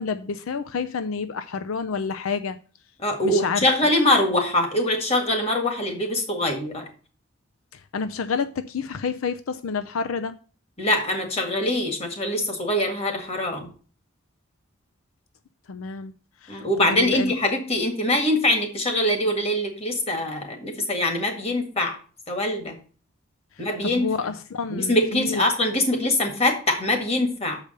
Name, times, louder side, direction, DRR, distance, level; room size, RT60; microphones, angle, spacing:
voice 1, 0.0-2.6 3.2-3.7 7.7-10.3 15.7-16.1 16.4-17.3 23.6-25.5, left 5 dB, 80° left, 0.5 m, -29 dB
voice 2, 3.0-6.9 10.8-13.7 16.5-21.9 22.3-22.8 23.6-24.1 24.7-27.6, left 1 dB, 30° left, 1.7 m, -23 dB
6.7 x 4.9 x 6.5 m
head